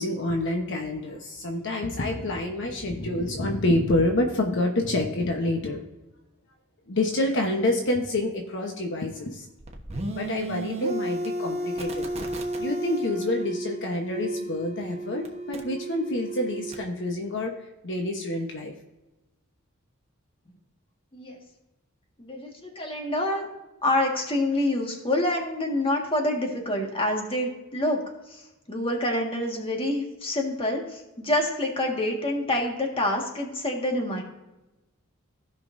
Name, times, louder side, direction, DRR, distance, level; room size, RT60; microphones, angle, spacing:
voice 1, 0.0-5.8 6.9-9.5 10.1-12.1 12.6-18.7, left 1 dB, 60° left, 2 dB, 1.1 m, -27 dB
sound 1, 9.6-16.8, right 1 dB, 30° right, 1.1 m, -33 dB
voice 2, 21.1-21.4 22.2-23.5 23.8-28.0 28.3-28.4 28.7-34.2, left 1 dB, 25° left, 1 dB, 1.7 m, -27 dB
16.0 x 5.7 x 2.6 m, 1.0 s
head